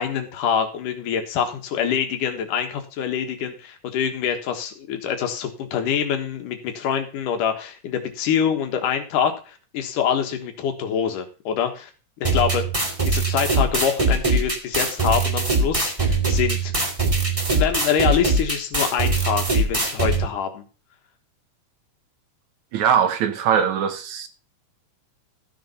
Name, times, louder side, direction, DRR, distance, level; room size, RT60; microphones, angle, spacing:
voice 1, 0.0-11.9 12.2-12.6 13.0-16.7 17.5-20.6, left 8 dB, 85° left, 3.1 m, -25 dB
sound 1, 12.2-20.2, right 3 dB, 10° right, 2.2 m, -22 dB
voice 2, 22.7-24.3, right 8 dB, 70° right, 2.3 m, -21 dB
14.0 x 6.9 x 5.6 m
omnidirectional pair, 3.6 m